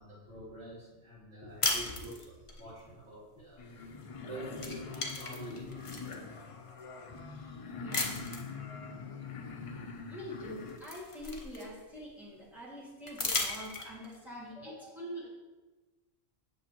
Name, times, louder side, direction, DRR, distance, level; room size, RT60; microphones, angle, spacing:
voice 1, 0.0-3.7 4.2-5.9 15.2-15.3, right 2 dB, 35° right, -11 dB, 2.7 m, -47 dB
sound 1, 1.6-2.6 4.0-4.2 4.5-6.2 6.8-6.9 7.9-8.5 10.0-10.1 10.4-12.0 13.1-14.2, left 3 dB, 30° left, 0.7 m, -35 dB
sound 2, 3.6-10.8, left 5 dB, 60° left, 0.3 m, -44 dB
voice 2, 7.8-8.2 10.1-15.3, equal, ahead, -7 dB, 2.0 m, -44 dB
8.1 x 6.6 x 2.9 m, 1.2 s
omnidirectional pair, 1.3 m